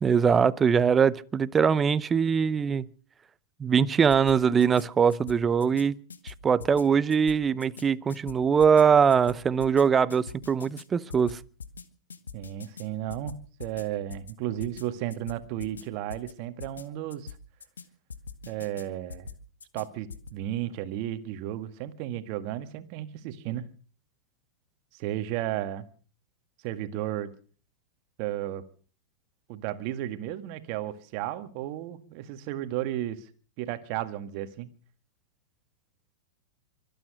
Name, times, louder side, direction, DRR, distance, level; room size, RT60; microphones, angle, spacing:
voice 1, 0.0-2.8 3.6-6.0 6.2-11.4, right 6 dB, 20° right, 0.7 m, -22 dB
sound 1, 4.1-4.8 5.1-5.8 6.1-6.8 7.1-7.8 8.1-8.8 9.1-9.8 10.1-10.8 11.1-11.8 12.1-12.8 13.1-13.8 14.1-14.3 14.6-14.8 15.1-15.8 16.1-16.3 16.6-16.8 17.1-17.8 18.1-18.8 19.1-19.8 20.1-20.3, left 5 dB, 90° left, 1.5 m, -43 dB
voice 2, 12.3-13.3 13.6-17.4 18.5-19.3 19.7-23.6 24.9-25.9 26.6-27.3 28.2-28.6 29.5-33.3 33.6-34.7, right 13 dB, 50° right, 1.9 m, -33 dB
24.5 x 9.2 x 6.4 m
hypercardioid pair, 110°, 0 cm